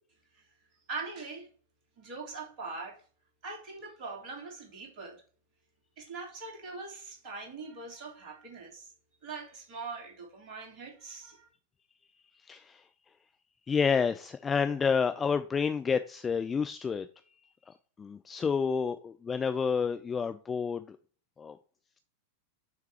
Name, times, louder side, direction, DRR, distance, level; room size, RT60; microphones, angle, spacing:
voice 1, 0.9-1.5 2.0-3.0 3.4-5.2 6.0-8.9 9.2-11.5, right 4 dB, 40° right, 3.1 m, -42 dB
voice 2, 12.5-12.8 13.7-17.1 18.0-21.0 21.4-21.6, left 6 dB, 20° left, 0.4 m, -29 dB
6.4 x 3.5 x 4.8 m
figure-of-eight pair, 90°, 0 cm